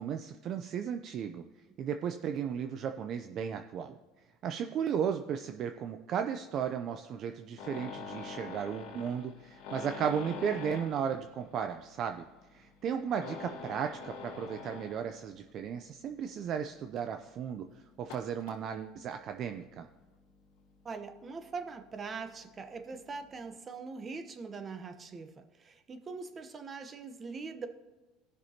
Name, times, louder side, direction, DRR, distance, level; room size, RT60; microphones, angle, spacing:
voice 1, 0.0-1.4 1.8-4.0 4.4-12.2 12.5-17.7 18.0-19.9, right 8 dB, 50° right, 7 dB, 0.5 m, -35 dB
sound 1, 7.6-15.4 15.7-16.0 16.5-16.6 16.9-17.0 18.0-18.6 19.8-20.0 20.4-20.9 21.6-21.7 22.0-22.1 22.3-22.4, left 5 dB, 75° left, 1.9 m, -44 dB
voice 2, 20.8-27.7, right 4 dB, 30° right, 8 dB, 1.0 m, -42 dB
17.0 x 6.1 x 2.9 m, 1.1 s
supercardioid pair, 100°, 0 cm